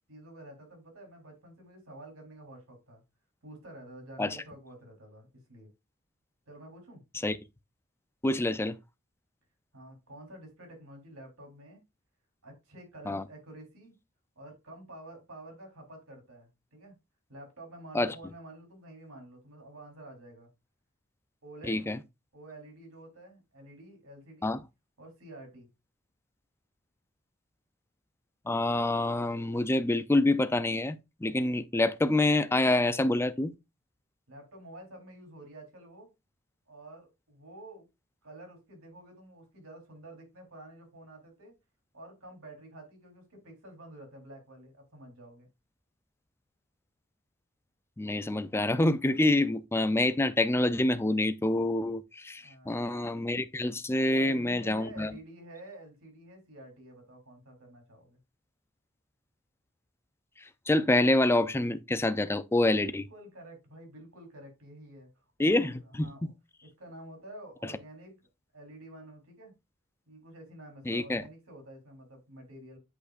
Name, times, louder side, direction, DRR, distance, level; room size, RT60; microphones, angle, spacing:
voice 1, 0.1-3.0 3.4-5.7 6.5-7.0 9.7-11.8 12.4-14.0 14.4-17.0 17.3-20.5 21.4-21.9 22.3-24.6 25.0-25.7 34.3-36.1 36.7-37.9 38.2-41.5 41.9-45.5 52.4-52.8 54.0-58.2 62.7-66.3 66.6-68.3 68.5-69.5 70.1-72.8, right 1 dB, 90° right, 3.5 m, -49 dB
voice 2, 8.2-8.8 13.1-13.2 17.9-18.1 21.7-22.0 24.4-24.6 28.5-33.5 48.0-55.1 60.7-63.0 65.4-66.3 70.9-71.2, left 2 dB, 10° left, 0.4 m, -27 dB
8.4 x 5.2 x 2.5 m
head